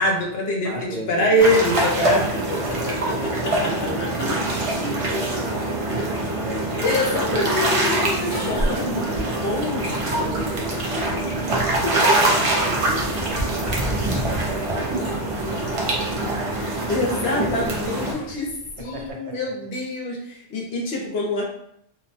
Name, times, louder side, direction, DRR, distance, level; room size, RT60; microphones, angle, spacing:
voice 1, 0.0-0.7 1.1-2.2 2.5-2.6 2.9-3.1 3.6-3.7 6.8-9.9 16.9-18.5 18.8-21.4, left 1 dB, 65° left, -1 dB, 0.8 m, -24 dB
voice 2, 0.6-1.6 2.0-2.4 3.1-6.8 9.2-9.7 10.0-16.5 18.3-18.4 18.8-19.4, right 2 dB, 75° right, 1 dB, 0.8 m, -36 dB
sound 1, 1.4-18.1, right 1 dB, 45° right, 0.4 m, -24 dB
sound 2, 7.0-19.1, right 1 dB, 40° left, 1.1 m, -37 dB
2.6 x 2.1 x 2.6 m, 0.72 s
omnidirectional pair, 1.2 m